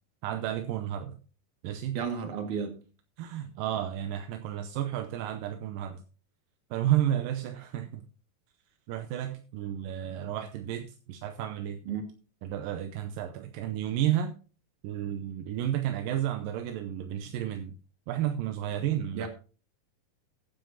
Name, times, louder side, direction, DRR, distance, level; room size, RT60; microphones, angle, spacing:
voice 1, 0.2-1.2 1.6-2.0 3.2-6.0 6.7-8.0 8.9-11.8 12.4-14.3 14.8-17.8 18.1-19.3, right 11 dB, 80° right, 7 dB, 2.3 m, -32 dB
voice 2, 1.9-2.8 11.9-12.0 19.1-19.3, right 6 dB, 60° right, 5 dB, 3.3 m, -32 dB
15.0 x 9.6 x 2.8 m, 0.36 s
omnidirectional pair, 4.1 m